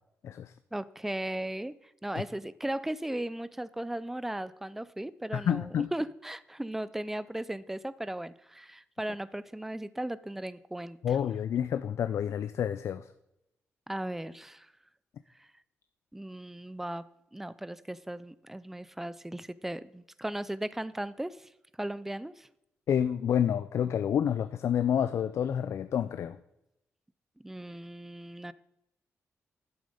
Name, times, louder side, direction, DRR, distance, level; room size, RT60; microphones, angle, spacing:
voice 1, 0.7-1.8 2.0-11.2 13.9-14.7 15.4-15.5 16.1-17.0 17.3-21.5 21.8-22.5 27.4-28.5, right 1 dB, 5° right, 17 dB, 0.4 m, -37 dB
voice 2, 5.3-5.9 11.0-13.1 22.9-26.4, left 9 dB, 65° left, 11 dB, 0.4 m, -29 dB
11.5 x 7.8 x 5.1 m, 0.85 s
wide cardioid pair, 135°, 5 cm